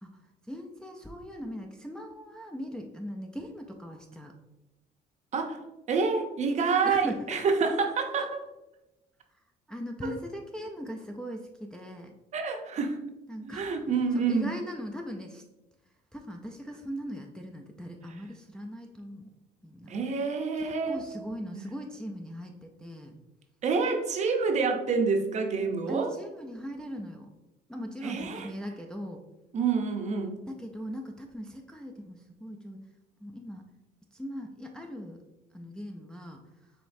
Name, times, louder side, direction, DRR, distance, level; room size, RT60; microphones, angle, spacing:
voice 1, 0.0-4.3 6.8-7.6 8.2-8.3 9.3-9.4 9.7-12.1 13.3-13.7 14.1-15.4 16.1-19.3 19.6-20.0 20.6-23.2 25.9-27.3 27.7-29.2 30.5-32.8 33.2-33.7 34.1-35.2 35.5-36.7, equal, 5° left, 1 dB, 0.4 m, -39 dB
voice 2, 5.9-8.3 12.3-13.0 13.4-14.5 19.9-21.0 21.5-21.6 23.6-26.1 28.0-28.5 29.5-30.4, right 5 dB, 45° right, 4 dB, 0.6 m, -27 dB
5.1 x 3.0 x 2.6 m, 0.97 s
cardioid pair, 110°, 17 cm